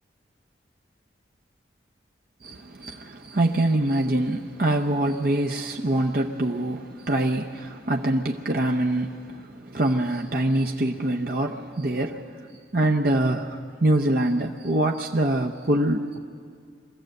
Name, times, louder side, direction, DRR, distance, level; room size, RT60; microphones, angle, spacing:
voice 1, 2.4-12.5 12.7-16.2, right 1 dB, 50° right, 0.8 m, -24 dB
24.0 x 15.0 x 7.8 m
head